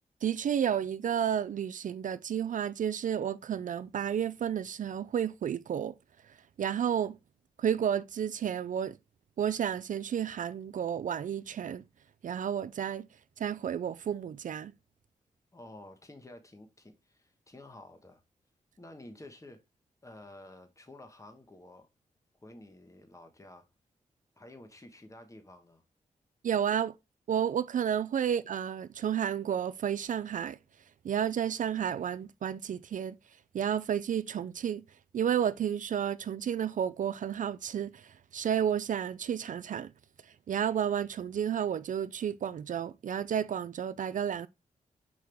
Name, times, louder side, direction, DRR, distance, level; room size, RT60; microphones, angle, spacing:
voice 1, 0.2-5.9 6.6-7.2 7.6-9.0 9.4-11.8 12.2-13.1 13.4-14.7 26.4-26.9 27.3-30.6 31.0-33.2 33.5-34.8 35.1-39.9 40.5-44.5, right 9 dB, 65° right, 0.4 m, -31 dB
voice 2, 15.5-18.2 18.8-19.6 20.0-21.9 22.4-23.7 24.4-25.8, left 1 dB, 20° left, 1.4 m, -51 dB
6.1 x 4.7 x 3.4 m
cardioid pair, 55°, 14 cm